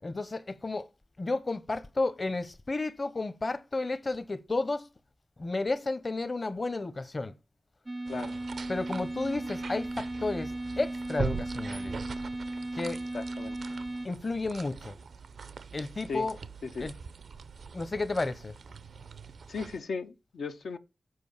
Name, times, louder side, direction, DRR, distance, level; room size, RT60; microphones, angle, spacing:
voice 1, 0.0-0.9 1.2-4.9 5.4-7.3 8.7-12.0 12.8-13.0 14.0-14.9 15.7-16.4 16.8-17.0 17.7-18.5, left 3 dB, 45° left, 0.9 m, -32 dB
sound 1, 7.9-14.1, right 2 dB, 25° right, 0.4 m, -36 dB
sound 2, 8.1-19.8, right 5 dB, 85° right, 0.6 m, -42 dB
voice 2, 13.1-13.6 16.1-16.3 16.6-16.9 19.5-20.8, left 4 dB, 90° left, 0.8 m, -36 dB
7.6 x 5.1 x 6.7 m
cardioid pair, 60°, 0 cm